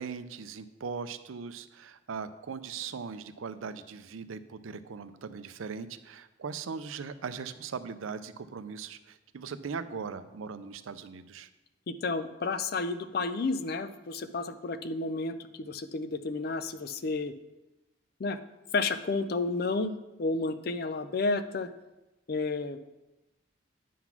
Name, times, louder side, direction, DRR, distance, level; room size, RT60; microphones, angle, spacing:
voice 1, 0.0-11.5, right 5 dB, 85° right, 12 dB, 0.5 m, -39 dB
voice 2, 11.9-17.3 18.2-18.4 18.7-19.9 20.2-21.7 22.3-22.8, left 3 dB, 50° left, 11 dB, 0.4 m, -31 dB
9.2 x 4.0 x 5.9 m, 1.0 s
head